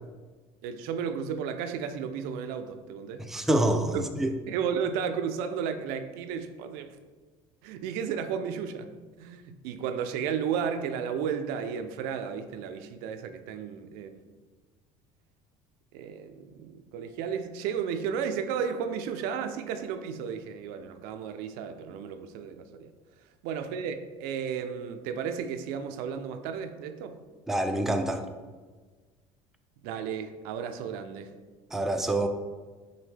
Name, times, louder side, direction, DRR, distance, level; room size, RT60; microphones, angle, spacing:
voice 1, 0.6-3.2 3.9-4.0 4.5-7.0 7.6-8.9 9.2-14.3 15.9-22.9 23.4-27.2 29.8-31.3, right 7 dB, 75° right, 8 dB, 0.4 m, -33 dB
voice 2, 3.3-4.3 27.5-28.2 31.7-32.3, right 1 dB, ahead, 5 dB, 0.4 m, -26 dB
6.3 x 2.1 x 3.3 m, 1.4 s
supercardioid pair, 80°, 16 cm